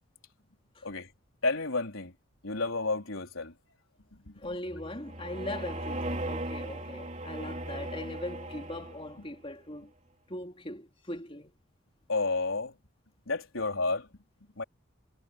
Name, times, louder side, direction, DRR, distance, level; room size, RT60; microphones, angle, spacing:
voice 1, 1.4-2.1 2.4-3.5 4.1-4.4 12.1-12.8 13.3-14.1 14.6-14.7, left 3 dB, 80° left, 4.1 m, -31 dB
voice 2, 4.4-9.9 10.3-11.5, left 1 dB, 25° left, 3.6 m, -40 dB
sound 1, 4.6-9.3, right 1 dB, 35° right, 3.9 m, -38 dB
head